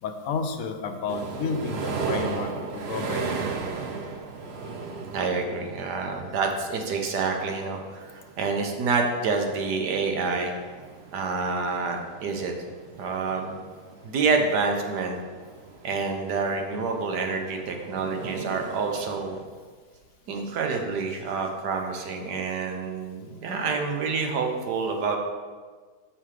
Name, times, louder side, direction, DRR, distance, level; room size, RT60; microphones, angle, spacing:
voice 1, 0.0-3.4, left 5 dB, 65° left, 6 dB, 1.0 m, -31 dB
sound 1, 1.1-19.4, right 4 dB, 55° right, 0.8 m, -37 dB
voice 2, 5.1-10.5 11.1-12.5 13.0-13.6 14.0-15.2 15.8-19.4 20.3-25.2, right 4 dB, 80° right, 3 dB, 1.5 m, -28 dB
7.0 x 5.8 x 4.8 m, 1.5 s
omnidirectional pair, 1.8 m